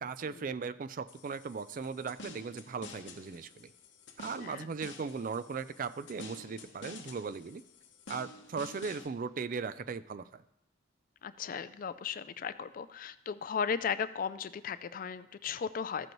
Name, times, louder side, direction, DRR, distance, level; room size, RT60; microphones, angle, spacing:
voice 1, 0.0-3.7 4.2-7.6 8.1-10.4, right 5 dB, 45° right, 14 dB, 0.4 m, -38 dB
sound 1, 1.1-9.1, left 3 dB, 65° left, 1.0 m, -50 dB
voice 2, 11.2-16.1, left 6 dB, 45° left, 14 dB, 0.3 m, -36 dB
14.0 x 7.8 x 3.1 m, 0.86 s
head